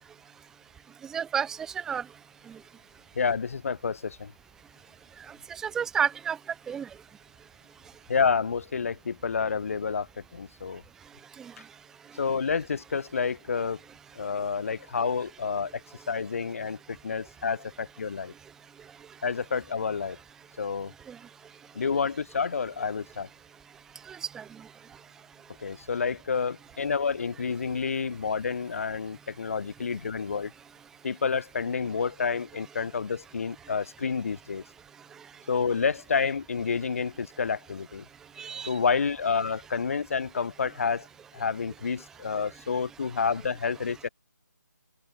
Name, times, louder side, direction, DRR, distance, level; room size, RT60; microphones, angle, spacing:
voice 1, 1.1-2.0 5.6-6.4 6.7-6.9 11.4-11.5 21.1-21.2 24.1-24.4 38.4-38.7, right 7 dB, 5° right, 1.0 m, -30 dB
voice 2, 3.1-4.3 8.1-10.8 12.2-13.8 14.1-15.8 16.1-18.3 19.2-20.2 20.6-20.9 21.7-23.3 25.6-30.5 31.0-34.6 35.5-38.0 38.7-41.1 41.3-44.1, left 5 dB, 50° left, 1.6 m, -29 dB
open air
figure-of-eight pair, 165°, 10 cm